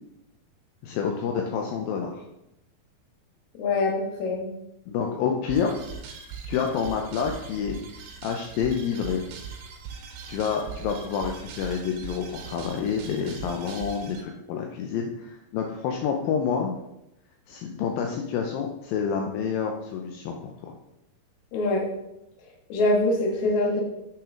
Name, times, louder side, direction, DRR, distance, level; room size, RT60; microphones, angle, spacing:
voice 1, 0.8-2.2 4.9-5.8 6.5-7.8 8.2-9.2 10.3-16.8 17.5-20.7, left 6 dB, 80° left, 2 dB, 2.2 m, -28 dB
voice 2, 3.5-4.5 21.5-21.8 22.7-23.8, left 2 dB, 60° left, 1 dB, 2.3 m, -24 dB
sound 1, 5.5-14.2, right 6 dB, 70° right, 2.2 m, -41 dB
8.3 x 6.0 x 3.7 m, 0.85 s
omnidirectional pair, 4.5 m